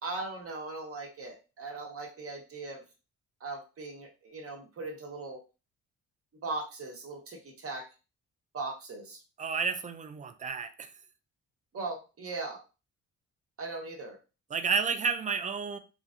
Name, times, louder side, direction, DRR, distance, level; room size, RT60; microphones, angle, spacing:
voice 1, 0.0-2.8 3.4-5.4 6.4-7.8 8.5-9.2 11.7-12.6 13.6-14.2, right 3 dB, 50° right, 1.0 m, -39 dB
voice 2, 9.4-10.9 14.5-15.8, right 5 dB, 25° right, 0.3 m, -31 dB
2.9 x 2.5 x 2.4 m
cardioid pair, 90°, 30 cm